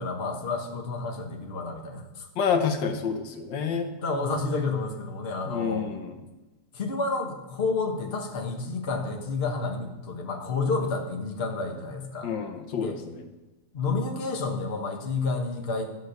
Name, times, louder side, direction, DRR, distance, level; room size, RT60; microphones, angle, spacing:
voice 1, 0.0-2.3 4.0-5.8 6.7-12.3 12.7-13.0 13.7-15.9, left 3 dB, 35° left, 3 dB, 1.4 m, -30 dB
voice 2, 2.4-3.9 5.4-6.2 12.2-13.2, left 6 dB, 80° left, 7 dB, 1.7 m, -28 dB
12.0 x 6.5 x 6.5 m, 1.1 s
omnidirectional pair, 2.0 m